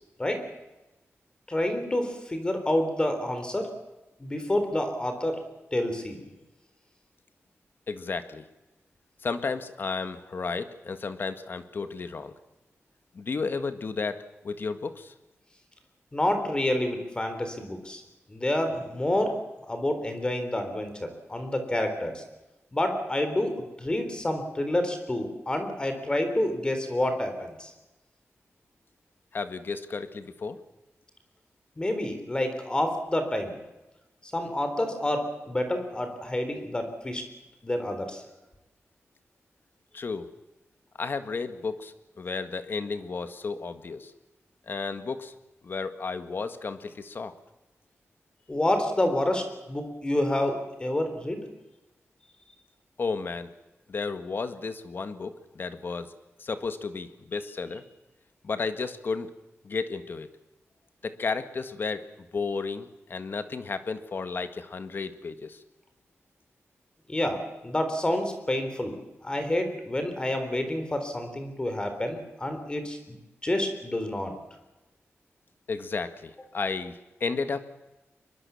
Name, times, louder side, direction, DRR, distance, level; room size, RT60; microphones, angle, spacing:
voice 1, 1.5-3.7 4.2-5.4 5.7-6.2 16.1-18.0 18.3-19.4 19.7-22.2 22.7-27.7 31.8-33.5 34.3-37.2 37.6-38.2 48.5-51.4 67.1-73.0 73.4-74.3, left 1 dB, 20° left, 7 dB, 3.9 m, -28 dB
voice 2, 7.9-8.5 9.2-12.3 13.1-15.1 29.3-30.6 39.9-40.3 41.0-44.1 44.7-45.3 45.6-47.3 53.0-53.5 53.9-56.1 56.4-57.8 58.4-59.3 59.6-60.3 61.0-62.1 62.3-65.6 75.7-77.6, left 4 dB, 50° left, 10 dB, 1.7 m, -33 dB
24.0 x 22.5 x 7.2 m, 1.0 s
wide cardioid pair, 180°, 5 cm